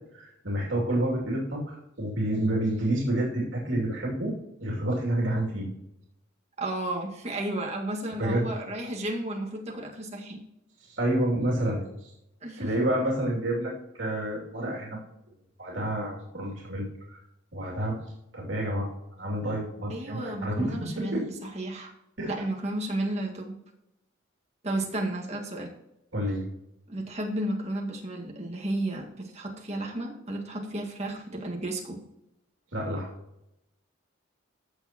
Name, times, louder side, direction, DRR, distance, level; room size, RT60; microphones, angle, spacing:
voice 1, 0.1-4.3 4.6-5.7 8.2-8.5 10.8-12.1 12.6-15.0 15.6-17.2 17.5-18.0 18.3-18.9 19.2-21.3 22.2-22.4 26.1-26.5 32.7-33.1, right 1 dB, 85° right, -3 dB, 2.7 m, -29 dB
voice 2, 6.6-10.4 12.4-12.9 19.9-21.9 22.3-23.6 24.6-25.7 26.9-32.0, right 1 dB, 35° right, 0 dB, 1.8 m, -33 dB
15.0 x 6.5 x 3.0 m, 0.85 s
head